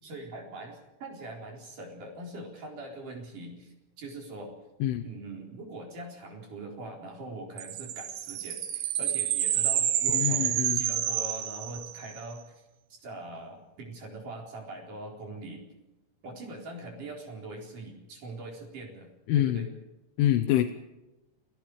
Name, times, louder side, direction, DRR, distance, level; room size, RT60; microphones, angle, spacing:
voice 1, 0.0-4.5 5.0-12.6 12.9-15.6 16.2-19.1 19.4-19.7, right 2 dB, 45° right, 1 dB, 5.4 m, -42 dB
sound 1, 7.6-12.2, right 11 dB, 65° right, 2.6 m, -29 dB
voice 2, 10.1-10.8 19.3-19.7 20.2-20.7, left 12 dB, 85° left, 5 dB, 3.5 m, -25 dB
29.0 x 19.0 x 4.9 m, 1.0 s
omnidirectional pair, 5.5 m